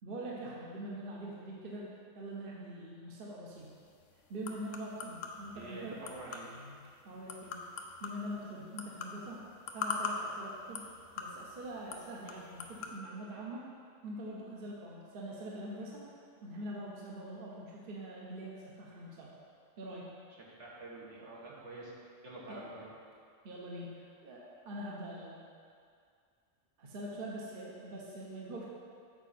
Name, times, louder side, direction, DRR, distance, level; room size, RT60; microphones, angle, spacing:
voice 1, 0.0-1.9 2.1-3.7 4.3-6.0 7.0-7.6 8.0-9.4 9.7-10.9 11.2-13.6 14.0-16.0 16.4-19.3 19.8-20.1 22.5-22.6 23.4-25.3 26.8-28.7, right 1 dB, 50° right, -4 dB, 1.0 m, -43 dB
sound 1, 3.5-13.0, left 4 dB, 80° left, 1.0 m, -43 dB
voice 2, 5.5-6.5 20.6-21.9 22.2-22.9, right 2 dB, 70° right, -5 dB, 1.5 m, -47 dB
7.3 x 4.9 x 4.2 m, 2.2 s
omnidirectional pair, 1.3 m